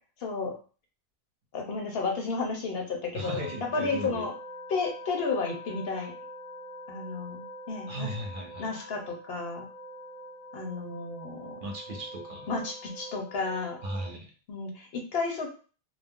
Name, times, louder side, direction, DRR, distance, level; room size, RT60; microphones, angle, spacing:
voice 1, 0.2-0.5 1.5-4.3 4.7-6.1 6.9-8.1 8.6-9.7 10.5-11.6 12.5-13.8 14.5-15.5, left 4 dB, 70° left, 2 dB, 0.9 m, -32 dB
voice 2, 3.1-4.2 7.9-8.7 11.6-12.5 13.8-14.3, right 1 dB, 60° right, 2 dB, 0.8 m, -37 dB
sound 1, 3.2-14.1, equal, 50° left, 0.5 m, -45 dB
2.4 x 2.0 x 3.5 m, 0.37 s
omnidirectional pair, 1.1 m